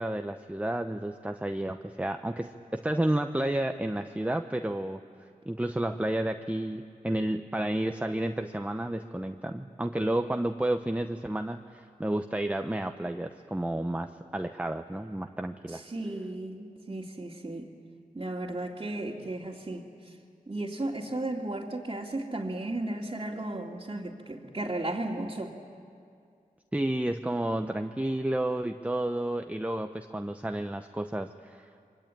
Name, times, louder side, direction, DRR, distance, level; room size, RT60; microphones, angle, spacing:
voice 1, 0.0-5.0 5.5-15.8 26.7-31.9, right 1 dB, 10° right, 7 dB, 0.8 m, -31 dB
voice 2, 15.7-17.7 18.1-19.9 20.5-25.5, right 2 dB, 30° right, -5 dB, 2.4 m, -34 dB
27.0 x 23.5 x 9.2 m, 2.3 s
wide cardioid pair, 65°, 15 cm